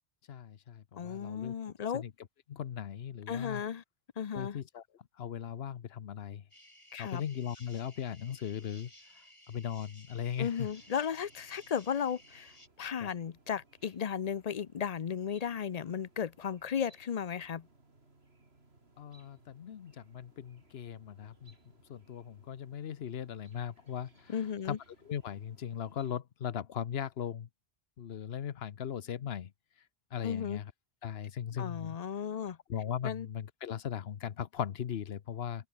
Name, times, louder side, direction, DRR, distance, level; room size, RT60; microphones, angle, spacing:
voice 1, 0.3-1.5 1.9-2.1 2.5-3.6 4.3-4.8 5.2-6.4 7.0-8.9 9.5-10.7 13.0-13.1 19.0-21.5 21.9-24.4 24.6-24.8 25.0-27.5 28.0-29.5 30.1-30.7 31.0-32.0 32.7-35.7, left 9 dB, 75° left, 1.1 m, -38 dB
voice 2, 1.0-2.0 3.3-3.8 4.2-4.6 6.9-7.2 10.4-12.5 12.8-17.7 24.3-24.8 30.2-30.6 31.6-32.6 33.0-33.3, left 7 dB, 45° left, 0.6 m, -35 dB
sound 1, 6.5-12.7, left 1 dB, 30° left, 7.2 m, -58 dB
sound 2, 10.3-26.2, right 2 dB, 75° right, 3.8 m, -65 dB
open air
omnidirectional pair, 1.1 m